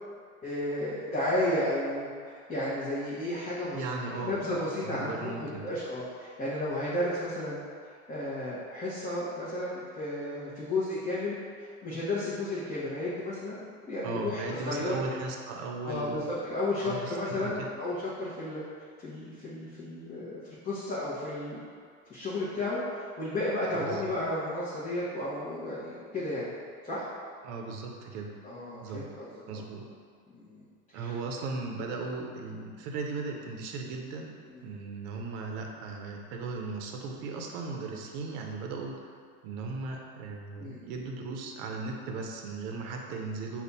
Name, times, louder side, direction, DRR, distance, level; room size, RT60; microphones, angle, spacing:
voice 1, 0.4-3.8 4.1-15.0 15.8-18.6 19.0-21.6 22.1-26.5 26.8-27.1 28.4-29.6 30.3-30.6 30.9-31.1 34.5-34.7 40.5-40.9, left 1 dB, 15° left, -10 dB, 0.9 m, -33 dB
voice 2, 3.7-4.4 4.8-5.7 14.0-16.4 16.8-17.7 23.7-24.1 27.4-28.3 28.8-29.1 29.5-29.9 30.9-34.3 34.6-39.1 39.4-43.6, right 3 dB, 60° right, 2 dB, 0.8 m, -37 dB
5.3 x 2.4 x 4.1 m, 2.1 s
supercardioid pair, 120°, 43 cm